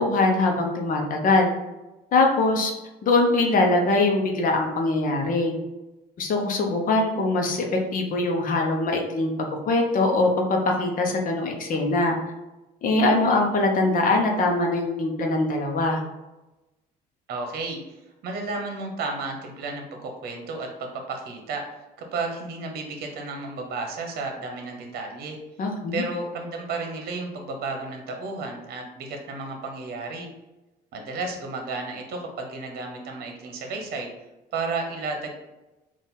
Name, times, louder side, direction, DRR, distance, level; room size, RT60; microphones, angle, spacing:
voice 1, 0.0-1.5 2.1-2.7 3.0-5.5 6.2-9.3 9.7-12.2 12.8-16.0 25.6-26.0, left 2 dB, 55° left, 2 dB, 0.8 m, -22 dB
voice 2, 17.3-17.9 18.2-25.4 25.9-30.3 30.9-34.1 34.5-35.3, right 3 dB, 65° right, 3 dB, 0.9 m, -32 dB
3.9 x 2.5 x 4.0 m, 1.0 s
cardioid pair, 110°, 17 cm